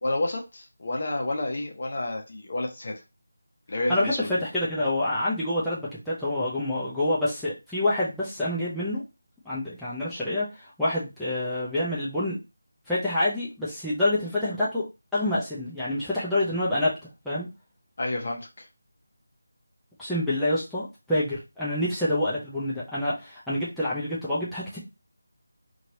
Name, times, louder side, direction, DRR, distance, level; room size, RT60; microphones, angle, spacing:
voice 1, 0.0-2.9 3.7-4.3 18.0-18.7, left 2 dB, 50° left, 2 dB, 0.8 m, -30 dB
voice 2, 4.4-9.0 9.4-12.4 12.9-14.8 15.1-16.9 17.2-17.5 20.0-24.8, left 1 dB, ahead, -11 dB, 0.6 m, -27 dB
2.9 x 2.8 x 2.7 m, 0.26 s
figure-of-eight pair, 170°, 0 cm